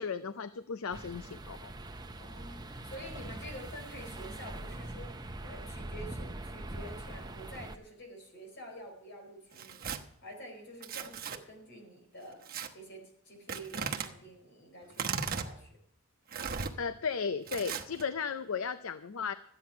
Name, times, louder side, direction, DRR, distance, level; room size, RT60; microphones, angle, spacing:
voice 1, 0.0-1.7 16.8-19.3, left 6 dB, 70° left, 12 dB, 0.6 m, -35 dB
sound 1, 0.9-7.8, right 1 dB, 20° right, 0.8 m, -43 dB
voice 2, 2.2-12.4 12.7-15.7, equal, 55° left, 2 dB, 4.5 m, -48 dB
Tearing, 9.5-10.0 10.8-11.4 12.5-12.7 13.5-14.1 14.9-15.5 16.3-16.7 17.5-18.0, right 6 dB, 45° right, 1.1 m, -36 dB
13.5 x 9.1 x 5.8 m, 0.72 s
head